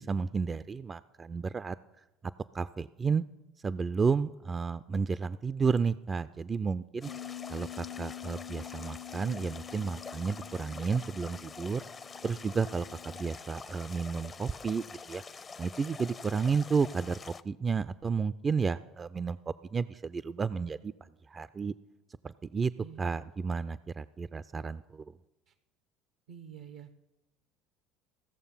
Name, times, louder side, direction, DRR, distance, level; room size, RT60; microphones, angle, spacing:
voice 1, 0.0-1.8 2.5-3.2 3.6-7.1 7.5-11.8 12.2-15.2 15.6-20.9 21.3-21.7 22.2-22.7 23.0-25.1, right 5 dB, 30° right, 14 dB, 0.3 m, -32 dB
sound 1, 7.0-17.4, left 5 dB, 30° left, 0.5 m, -46 dB
Bass guitar, 7.1-13.3, left 11 dB, 80° left, 0.6 m, -46 dB
voice 2, 22.8-23.2 25.5-25.6 26.3-26.9, right 8 dB, 75° right, 11 dB, 0.6 m, -48 dB
16.0 x 6.7 x 5.6 m, 1.0 s
hypercardioid pair, 75°, 0 cm